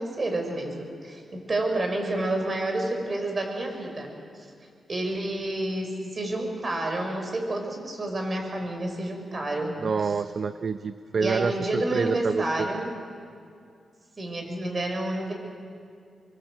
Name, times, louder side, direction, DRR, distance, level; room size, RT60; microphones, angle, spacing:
voice 1, 0.0-4.1 4.3-4.5 4.9-10.1 11.2-12.9 14.2-15.3, right 1 dB, 40° right, 3 dB, 6.1 m, -29 dB
voice 2, 9.8-12.7, right 5 dB, 55° right, 10 dB, 0.7 m, -27 dB
25.0 x 24.0 x 7.9 m, 2.3 s
cardioid pair, 75°, 0 cm